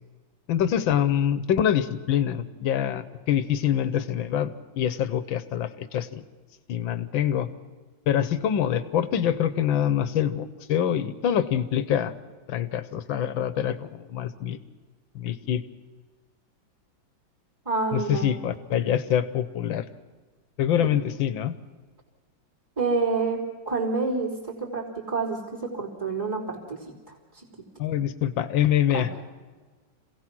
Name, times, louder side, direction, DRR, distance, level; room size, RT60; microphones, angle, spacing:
voice 1, 0.5-6.2 6.7-7.5 8.1-12.1 12.5-14.6 15.2-15.6 17.9-19.9 20.6-21.5 27.8-29.1, left 10 dB, 75° left, 13 dB, 1.7 m, -25 dB
voice 2, 17.7-18.4 20.8-20.9 22.8-26.8 27.1-27.2 28.9-29.1, right 4 dB, 10° right, -5 dB, 3.5 m, -28 dB
27.0 x 17.0 x 6.2 m, 1.4 s
omnidirectional pair, 2.2 m